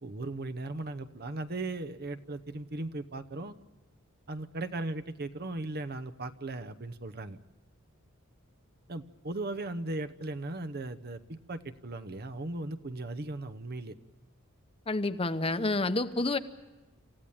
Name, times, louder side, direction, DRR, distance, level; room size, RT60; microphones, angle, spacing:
voice 1, 0.0-3.5 4.3-7.4 8.9-13.9, right 2 dB, 50° right, 12 dB, 0.9 m, -37 dB
voice 2, 14.9-16.4, left 2 dB, 25° left, 10 dB, 0.9 m, -29 dB
28.0 x 15.0 x 8.8 m, 1.1 s
head